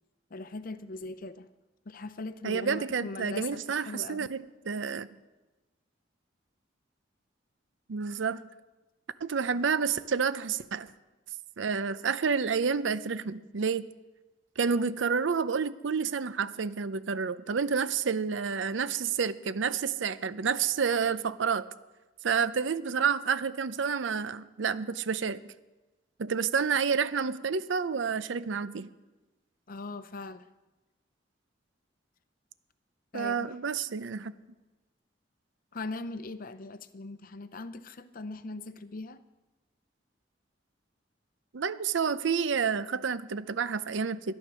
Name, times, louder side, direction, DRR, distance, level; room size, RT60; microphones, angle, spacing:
voice 1, 0.3-1.5 1.9-4.3 29.7-30.5 33.1-33.6 35.7-39.2, left 3 dB, 50° left, 0.6 m, -40 dB
voice 2, 2.4-5.1 7.9-8.5 9.2-10.9 11.6-13.9 14.6-21.7 22.2-25.4 26.2-28.9 33.1-34.3 41.5-44.3, right 6 dB, 80° right, 0.6 m, -29 dB
12.0 x 11.5 x 6.2 m
head